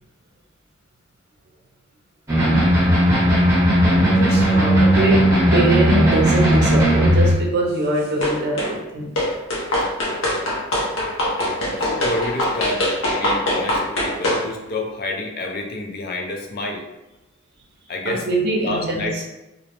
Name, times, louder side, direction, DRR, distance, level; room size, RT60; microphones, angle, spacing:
sound 1, 2.3-7.3, equal, 15° right, 0.8 m, -16 dB
voice 1, 4.1-9.1 13.6-13.8 18.1-19.2, right 2 dB, 55° right, -1 dB, 0.6 m, -23 dB
sound 2, 8.2-8.7 9.2-14.4, left 1 dB, 75° left, 0.8 m, -22 dB
voice 2, 11.8-16.9 17.9-18.3 18.6-19.2, left 2 dB, 50° left, 1 dB, 0.4 m, -28 dB
2.5 x 2.0 x 2.8 m, 0.99 s
head